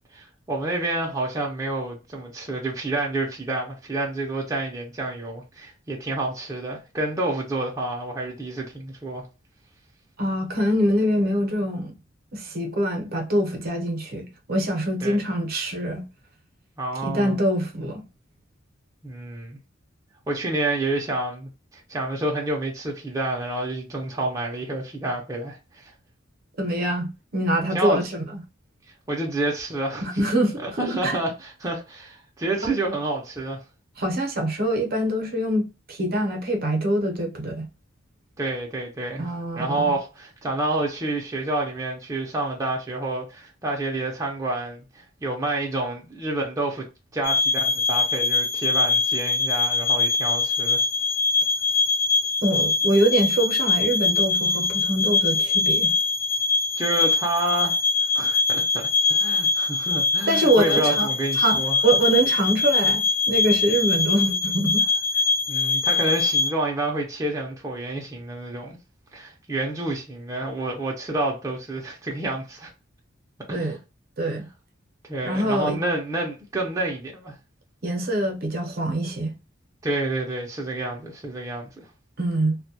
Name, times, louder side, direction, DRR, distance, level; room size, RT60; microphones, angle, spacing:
voice 1, 0.1-9.3 15.0-15.2 16.8-17.4 19.0-19.6 20.3-25.6 25.8-25.9 27.7-28.1 29.1-30.2 30.6-33.6 38.4-46.8 47.1-50.8 56.8-57.8 58.1-61.8 65.5-68.8 69.1-72.7 73.5-73.8 75.1-77.3 79.8-81.8, right 2 dB, 15° right, 0.5 m, -29 dB
voice 2, 10.2-11.9 12.3-16.0 17.0-18.0 26.6-28.0 28.3-28.4 30.0-31.2 34.0-37.7 39.2-40.0 52.4-55.9 60.3-64.8 73.5-73.8 74.2-74.5 75.2-75.8 77.8-79.4 82.2-82.6, right 1 dB, 50° right, 0.7 m, -24 dB
sound 1, 47.2-66.5, left 4 dB, 45° left, 0.6 m, -23 dB
2.1 x 2.1 x 2.7 m
head